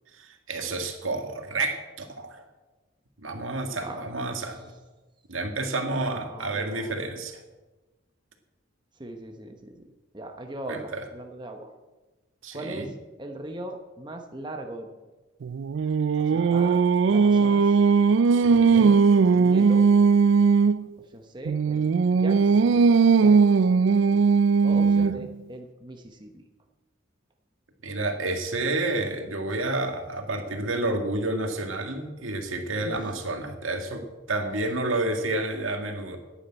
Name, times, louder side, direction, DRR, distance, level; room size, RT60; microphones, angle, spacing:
voice 1, 0.1-2.4 3.2-4.6 5.3-7.4 10.7-11.0 12.4-12.9 18.3-18.9 24.7-25.2 27.8-34.0 34.3-36.2, right 2 dB, 80° right, 4 dB, 1.9 m, -30 dB
voice 2, 3.8-4.1 6.3-7.1 9.0-9.9 10.1-11.7 12.5-14.9 16.2-17.8 18.5-19.0 19.3-19.9 21.0-22.8 23.2-23.4 23.7-23.8 24.1-24.3 24.6-26.4 32.7-33.1, right 1 dB, 20° right, 4 dB, 1.0 m, -40 dB
Singing, 15.4-20.8 21.5-25.3, right 5 dB, 65° right, 0.3 m, -19 dB
10.0 x 9.9 x 8.8 m, 1.2 s
head